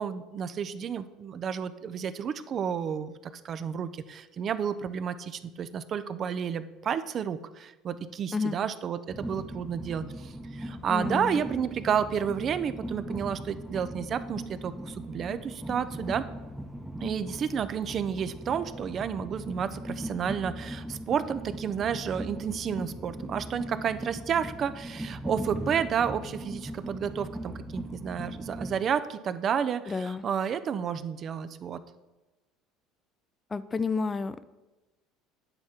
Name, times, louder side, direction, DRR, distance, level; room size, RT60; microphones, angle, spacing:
voice 1, 0.0-16.3 17.0-31.8, right 7 dB, 45° right, 13 dB, 0.5 m, -31 dB
Train, 9.1-28.8, right 1 dB, 5° right, 0.8 m, -39 dB
voice 2, 10.9-11.4 29.9-30.2 33.5-34.4, left 4 dB, 25° left, 14 dB, 0.4 m, -30 dB
8.9 x 3.6 x 5.7 m, 1.1 s
hypercardioid pair, 75°, 0 cm